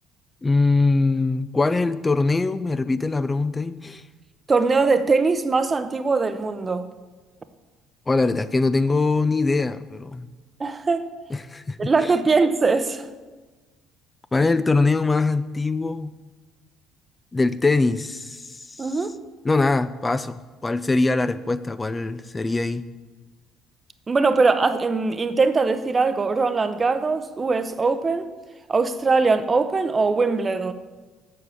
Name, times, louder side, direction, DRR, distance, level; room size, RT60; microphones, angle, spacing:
voice 1, 0.4-4.0 8.1-10.3 11.3-12.1 14.3-16.1 17.3-18.9 19.4-22.8, left 3 dB, 25° left, 0.4 m, -22 dB
voice 2, 4.5-6.8 10.6-11.0 11.8-13.1 18.8-19.1 24.1-28.3 28.7-30.7, right 4 dB, 30° right, 0.8 m, -21 dB
7.7 x 6.1 x 7.2 m
hypercardioid pair, 60°, 0 cm